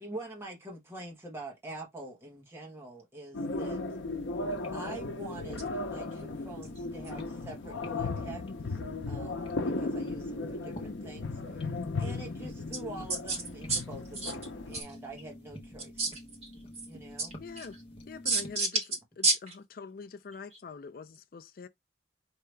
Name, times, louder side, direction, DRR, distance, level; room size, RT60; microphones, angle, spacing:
voice 1, 0.0-3.8 4.7-8.8 9.1-11.7 12.0-15.9 16.9-17.3, right 2 dB, 15° right, 1.3 m, -45 dB
sound 1, 3.3-14.8, left 3 dB, 90° left, 0.7 m, -36 dB
sound 2, 4.5-18.6, left 1 dB, 30° left, 1.1 m, -49 dB
voice 2, 13.1-13.4 13.7-13.9 14.1-14.3 14.7-15.0 16.0-16.9 17.2-17.8 18.2-18.9 19.2-19.6 20.5-20.6, right 3 dB, 35° right, 2.2 m, -31 dB
voice 3, 17.4-17.8 18.1-18.7 19.8-21.7, left 5 dB, 50° left, 0.4 m, -44 dB
4.7 x 2.8 x 3.3 m
head